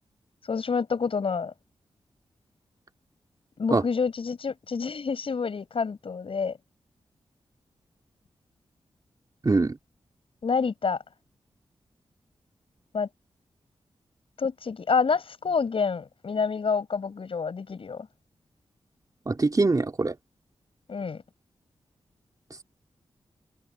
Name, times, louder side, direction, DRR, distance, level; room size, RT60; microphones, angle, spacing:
voice 1, 0.5-1.5 3.6-6.6 10.4-11.0 12.9-13.1 14.4-18.1 20.9-21.2, left 5 dB, 65° left, 7.2 m, -28 dB
voice 2, 9.4-9.8 19.3-20.1, right 3 dB, 35° right, 3.0 m, -23 dB
cardioid pair, 55°, 10 cm